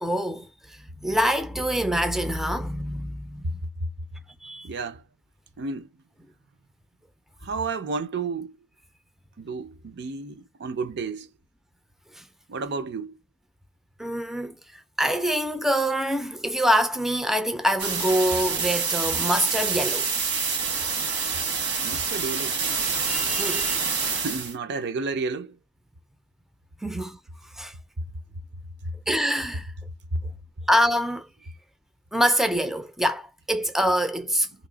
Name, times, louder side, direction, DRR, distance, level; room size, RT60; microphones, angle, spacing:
voice 1, 0.0-3.5 4.4-4.7 12.2-12.3 14.0-14.6 15.0-20.1 23.1-24.0 26.8-27.2 27.5-27.7 29.1-29.7 30.7-31.3 32.1-34.5, equal, ahead, 0.4 m, -25 dB
voice 2, 4.6-5.0 5.6-5.9 7.4-8.5 9.4-11.3 12.5-13.2 21.8-22.6 24.1-25.6 30.1-30.2, right 3 dB, 55° right, 0.5 m, -31 dB
sound 1, 17.8-24.5, right 5 dB, 75° right, 1.6 m, -27 dB
3.0 x 2.7 x 3.8 m
head